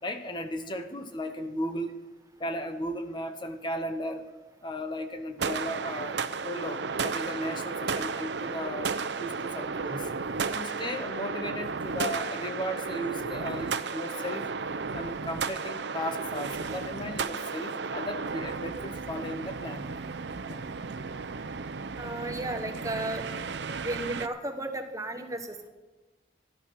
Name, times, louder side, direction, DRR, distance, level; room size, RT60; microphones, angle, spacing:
voice 1, 0.0-2.0 2.4-4.3 4.6-6.2 6.4-8.9 9.2-10.1 10.5-14.5 14.9-19.9 20.5-20.6, left 1 dB, 25° left, 7 dB, 0.8 m, -35 dB
sound 1, 5.4-24.3, right 5 dB, 80° right, 0.7 m, -34 dB
voice 2, 22.0-23.4 23.8-25.7, right 1 dB, 20° right, 6 dB, 1.3 m, -34 dB
13.0 x 12.5 x 6.2 m, 1.2 s
head